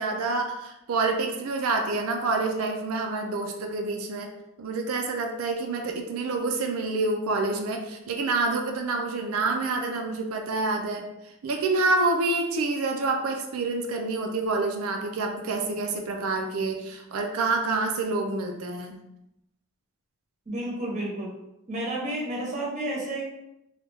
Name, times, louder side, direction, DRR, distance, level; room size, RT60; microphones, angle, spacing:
voice 1, 0.0-4.3 4.6-11.1 11.4-19.0, right 3 dB, 75° right, 4 dB, 0.4 m, -27 dB
voice 2, 20.5-21.3 21.7-23.2, right 1 dB, 30° right, -4 dB, 0.8 m, -31 dB
3.1 x 2.3 x 3.3 m, 0.87 s
head